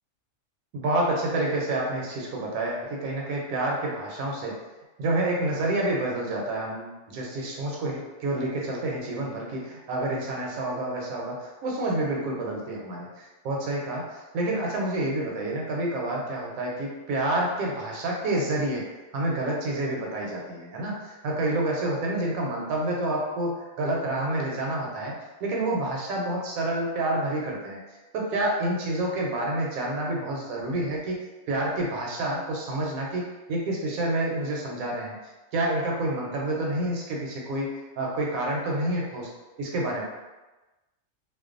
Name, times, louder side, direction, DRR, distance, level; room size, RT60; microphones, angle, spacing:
voice 1, 0.7-4.6 5.0-18.9 19.1-25.1 25.4-27.8 28.1-31.2 31.5-35.2 35.5-37.7 38.0-39.3 39.6-40.0, right 1 dB, 80° right, -2 dB, 1.0 m, -28 dB
2.4 x 2.2 x 2.4 m, 1.1 s
omnidirectional pair, 1.5 m